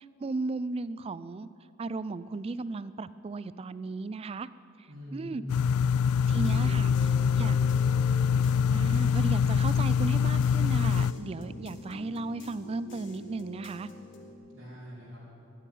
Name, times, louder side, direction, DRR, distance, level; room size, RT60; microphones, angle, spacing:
voice 1, 0.2-1.5 1.8-4.5 5.1-5.4 6.3-6.9 7.4-7.5 8.7-13.9, right 3 dB, 25° right, 16 dB, 0.3 m, -35 dB
voice 2, 4.9-5.8 6.3-7.6 14.5-15.3, equal, 65° right, -7 dB, 3.7 m, -43 dB
sound 1, 5.5-11.1, left 7 dB, 85° left, 0.3 m, -24 dB
sound 2, 6.3-14.3, equal, 60° left, 1.5 m, -45 dB
13.5 x 9.1 x 9.2 m, 2.7 s
head